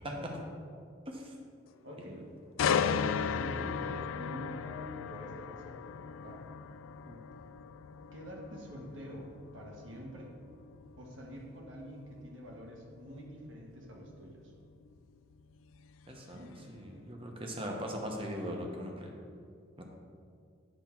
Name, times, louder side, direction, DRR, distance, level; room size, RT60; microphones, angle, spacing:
voice 1, 0.1-0.4 1.8-2.3 3.3-5.8 6.2-6.5 8.1-10.3 11.0-14.5 16.3-16.7, equal, 75° right, -1 dB, 1.4 m, -47 dB
sound 1, 2.6-16.4 16.8-17.1, left 6 dB, 90° left, 0.3 m, -37 dB
voice 2, 16.1-19.1 19.8-19.9, equal, 25° right, 1 dB, 0.9 m, -40 dB
9.0 x 3.6 x 5.8 m, 2.3 s
head